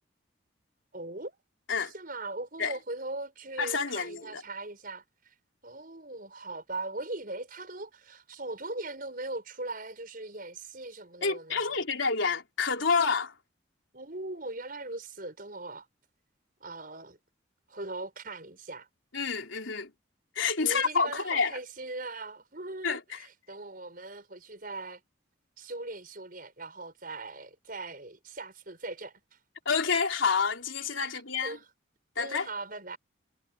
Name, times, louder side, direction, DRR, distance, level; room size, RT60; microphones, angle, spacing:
voice 1, 0.9-1.4 1.8-5.0 5.6-11.9 13.9-15.9 16.6-17.2 17.7-18.9 20.6-25.0 25.6-29.1 31.0-31.7 32.2-33.0, right 2 dB, 45° right, 6.0 m, -40 dB
voice 2, 3.6-4.4 11.2-13.3 19.1-19.9 20.4-21.6 22.8-23.0 29.7-31.6 32.2-32.5, left 5 dB, 85° left, 3.6 m, -28 dB
head